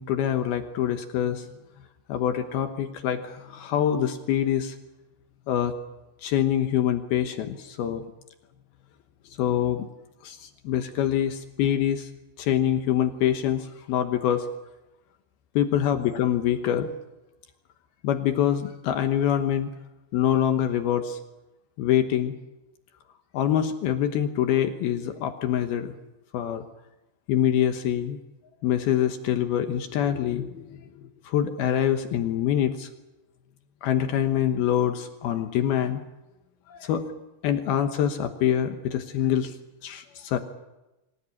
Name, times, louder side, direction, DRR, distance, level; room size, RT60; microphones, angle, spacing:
voice 1, 0.0-1.4 2.1-4.7 5.5-5.7 6.2-8.0 9.4-9.9 10.2-12.1 12.4-14.5 15.6-16.9 18.0-19.7 20.1-21.2 21.8-22.3 23.3-25.9 26.3-26.6 27.3-28.2 28.6-30.8 31.3-32.9 33.8-36.0 36.7-37.0 37.4-39.5 39.8-40.4, left 10 dB, 70° left, 7 dB, 2.9 m, -25 dB
26.0 x 16.0 x 9.8 m, 1.0 s
omnidirectional pair, 4.8 m